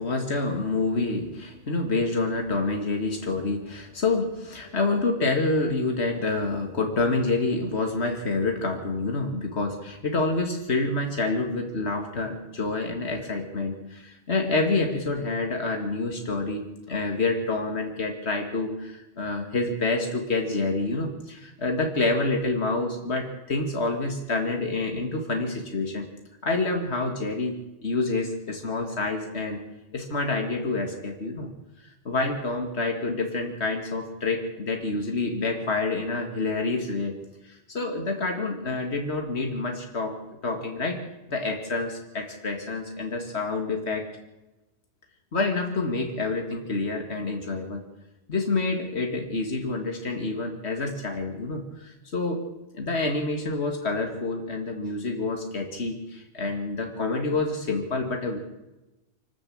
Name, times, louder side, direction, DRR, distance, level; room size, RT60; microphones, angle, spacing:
voice 1, 0.0-26.1 26.4-29.6 29.9-31.5 32.0-37.2 37.4-40.2 40.4-41.0 41.3-44.1 45.3-47.8 48.3-52.4 52.7-58.4, left 3 dB, 80° left, 3 dB, 2.4 m, -27 dB
25.5 x 13.0 x 8.6 m, 1.0 s
omnidirectional pair, 1.1 m